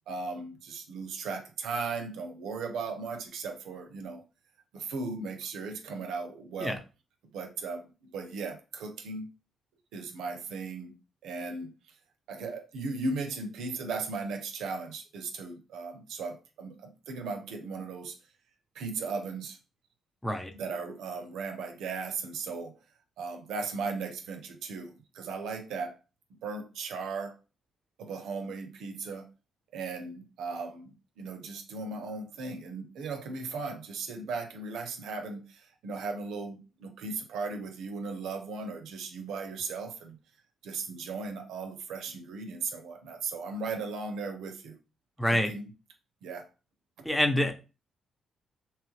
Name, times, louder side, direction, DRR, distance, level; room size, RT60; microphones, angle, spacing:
voice 1, 0.1-4.2 4.7-6.8 7.3-9.3 9.9-11.0 11.2-11.7 12.3-18.2 18.7-19.6 20.5-22.8 23.2-26.0 26.4-27.4 28.0-29.3 29.7-40.2 40.6-44.8 45.3-45.7 46.2-46.5 47.0-47.1, right 4 dB, 80° right, 0.5 m, -37 dB
voice 2, 45.2-45.5 47.0-47.5, left 1 dB, 5° left, 0.7 m, -26 dB
2.9 x 2.3 x 3.1 m
supercardioid pair, 60°, 0 cm